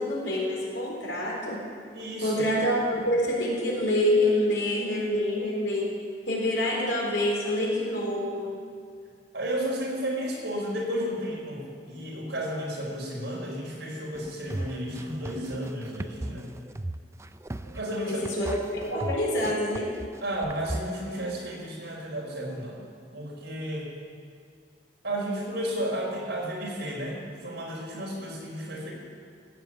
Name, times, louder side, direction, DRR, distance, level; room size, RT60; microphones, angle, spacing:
voice 1, 0.0-1.6 2.2-5.9 6.3-8.5 18.1-19.9, left 1 dB, 85° left, -3 dB, 4.3 m, -26 dB
voice 2, 1.9-2.4 9.3-16.5 17.6-18.3 20.2-22.8 23.1-23.9 25.0-28.9, equal, 75° right, -3 dB, 4.7 m, -33 dB
sound 1, 14.2-20.8, right 1 dB, 15° right, 0.3 m, -36 dB
15.0 x 7.5 x 9.0 m, 2.1 s
head